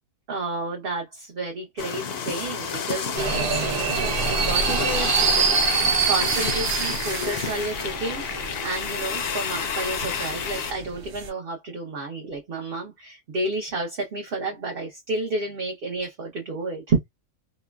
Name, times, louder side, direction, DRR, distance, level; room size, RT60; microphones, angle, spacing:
voice 1, 0.3-17.0, right 3 dB, 50° right, 0.7 m, -31 dB
sound 1, 1.8-10.7, left 6 dB, 60° left, 0.7 m, -30 dB
sound 2, 3.2-11.3, right 5 dB, 85° right, 0.4 m, -26 dB
2.9 x 2.1 x 2.3 m
omnidirectional pair, 1.5 m